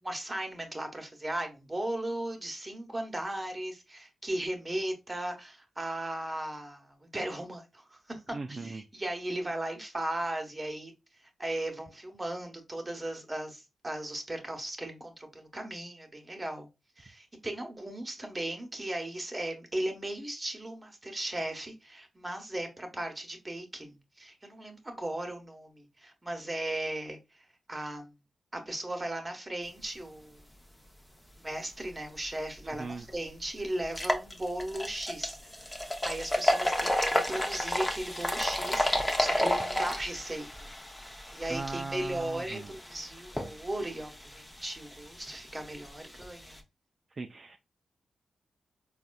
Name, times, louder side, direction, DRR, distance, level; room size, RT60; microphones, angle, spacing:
voice 1, 0.0-10.9 11.2-16.7 17.0-28.1 28.5-30.4 31.4-40.7 41.3-46.6, right 1 dB, 25° right, 1.1 m, -37 dB
voice 2, 8.3-8.8 32.6-33.1 41.5-42.7 47.1-47.6, right 3 dB, 50° right, 0.3 m, -39 dB
beer pour short, 32.6-32.7 33.1-33.2 33.8-46.6, left 1 dB, 15° left, 0.7 m, -32 dB
4.1 x 2.4 x 2.3 m
supercardioid pair, 45°, 0 cm